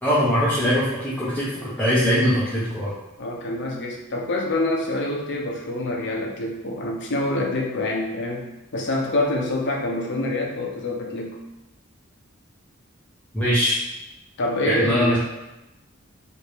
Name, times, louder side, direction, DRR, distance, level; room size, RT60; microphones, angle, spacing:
voice 1, 0.0-2.9 13.3-13.8 14.6-15.2, equal, 10° left, -10 dB, 0.6 m, -21 dB
voice 2, 3.2-11.4 14.4-15.2, left 1 dB, 55° left, 0 dB, 0.6 m, -26 dB
2.9 x 2.5 x 3.3 m, 0.98 s
head